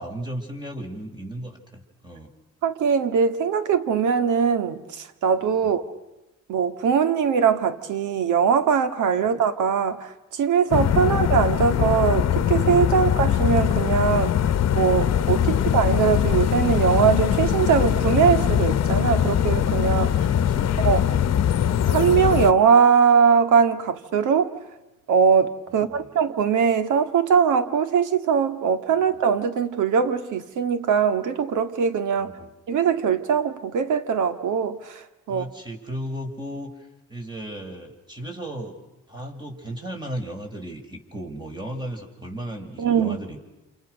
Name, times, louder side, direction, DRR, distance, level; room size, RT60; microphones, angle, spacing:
voice 1, 0.0-2.3 5.6-5.7 9.2-9.4 20.1-21.2 25.9-26.1 32.2-32.5 35.3-36.7 37.1-38.8 39.1-43.4, right 1 dB, 15° right, 2 dB, 6.3 m, -36 dB
voice 2, 2.6-5.8 6.5-14.4 14.7-20.3 20.8-21.0 21.9-24.5 25.1-32.3 32.7-35.5 42.8-43.2, right 6 dB, 80° right, 10 dB, 2.1 m, -21 dB
sound 1, 10.7-22.5, left 9 dB, 60° left, 1.1 m, -22 dB
29.0 x 29.0 x 6.6 m, 1.0 s
cardioid pair, 90°, 30 cm